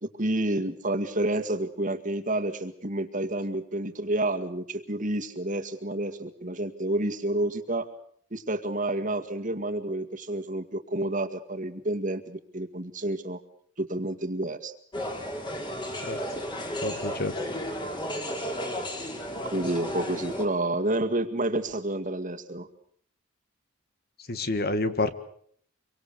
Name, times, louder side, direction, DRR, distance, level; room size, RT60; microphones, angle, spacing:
voice 1, 0.0-7.9 8.3-13.4 13.8-14.7 19.5-22.7, right 1 dB, 40° right, 6 dB, 2.0 m, -29 dB
sound 1, 14.9-20.4, equal, 20° left, 4.0 m, -33 dB
voice 2, 16.8-17.4 24.3-25.1, left 2 dB, 45° left, 11 dB, 1.7 m, -28 dB
26.0 x 24.0 x 6.9 m, 0.62 s
head